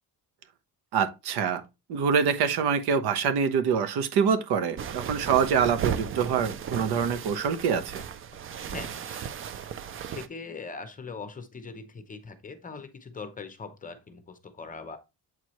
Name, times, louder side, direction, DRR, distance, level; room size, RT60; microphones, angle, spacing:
voice 1, 0.9-1.6 1.9-8.0, right 6 dB, 80° right, 1.1 m, -25 dB
sound 1, 4.8-10.3, right 8 dB, 35° right, 0.4 m, -35 dB
voice 2, 8.7-9.7 10.1-15.0, left 4 dB, 20° left, 0.7 m, -41 dB
7.9 x 4.6 x 3.0 m
cardioid pair, 175°, 38 cm